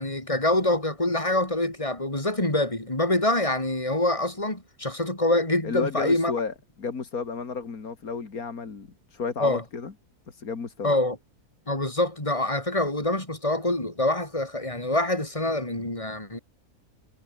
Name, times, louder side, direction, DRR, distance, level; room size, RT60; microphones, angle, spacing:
voice 1, 0.0-6.3 9.4-9.6 10.8-11.2 11.7-16.4, left 1 dB, 20° left, 4.3 m, -25 dB
voice 2, 5.6-9.9 10.3-10.9, left 5 dB, 70° left, 2.7 m, -32 dB
omnidirectional pair, 1.6 m